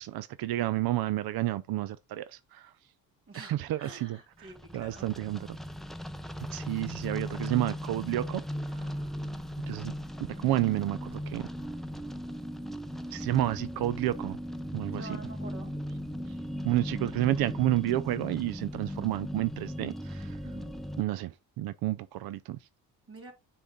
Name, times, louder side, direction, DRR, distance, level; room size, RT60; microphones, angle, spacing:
voice 1, 0.0-2.7 3.5-5.5 6.5-8.4 8.7-8.9 9.7-9.9 10.4-11.5 13.1-14.4 14.7-15.1 16.6-20.4 21.0-21.3 21.6-22.6, right 15 dB, 90° right, 0.6 m, -30 dB
voice 2, 3.3-5.1 14.9-15.7 20.4-20.7 23.1-23.3, right 2 dB, 40° right, 3.3 m, -47 dB
sound 1, 4.4-21.0, equal, ahead, 0.5 m, -38 dB
10.0 x 4.3 x 3.7 m
cardioid pair, 165°, 35 cm